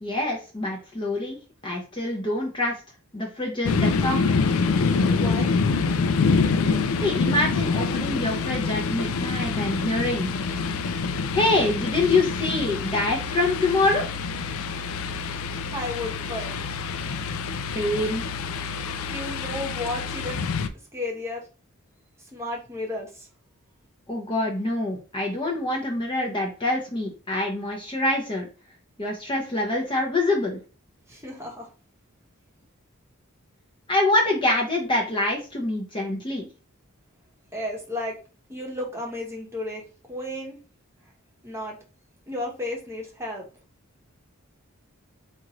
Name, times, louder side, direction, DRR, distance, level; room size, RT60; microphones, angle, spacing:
voice 1, 0.0-1.4 1.6-2.7 3.1-4.2 7.0-10.3 11.3-14.1 17.7-18.2 24.1-28.5 29.0-30.6 33.9-36.5, left 2 dB, 25° left, 0 dB, 0.7 m, -25 dB
sound 1, 3.6-20.7, left 4 dB, 75° left, 0.4 m, -26 dB
voice 2, 5.1-5.5 15.7-16.8 19.1-20.5 20.9-21.4 22.3-23.3 31.1-31.7 37.5-38.1 38.5-40.6 41.4-41.8 42.3-43.4, left 1 dB, 15° right, -1 dB, 0.9 m, -33 dB
4.3 x 2.5 x 3.0 m, 0.35 s
head